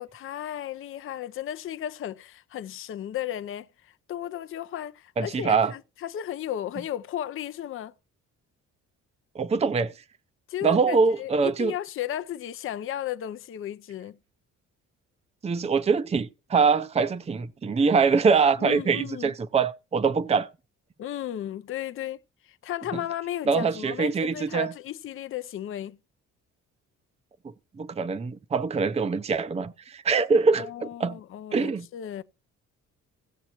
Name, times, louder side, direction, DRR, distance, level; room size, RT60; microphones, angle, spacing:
voice 1, 0.0-7.9 10.5-14.2 18.6-19.3 21.0-26.0 30.6-32.2, left 11 dB, 45° left, 0.5 m, -35 dB
voice 2, 5.2-5.7 9.3-9.9 10.6-11.7 15.4-20.5 23.5-24.7 27.8-31.2 31.5-31.9, right 5 dB, 20° right, 0.5 m, -24 dB
17.0 x 7.0 x 2.9 m
cardioid pair, 90°, 30 cm